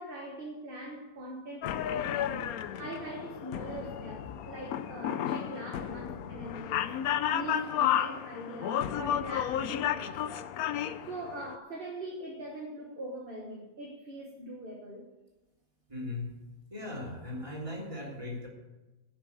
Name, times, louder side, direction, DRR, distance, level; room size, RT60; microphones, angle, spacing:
voice 1, 0.0-2.5 2.8-6.9 7.3-10.2 10.7-15.1, right 1 dB, 40° right, 1.5 m, -42 dB
sound 1, 1.6-11.6, left 10 dB, 90° left, 1.1 m, -32 dB
voice 2, 15.9-16.3 16.7-18.5, left 2 dB, 20° right, 3.2 m, -38 dB
11.0 x 6.7 x 8.4 m
omnidirectional pair, 1.5 m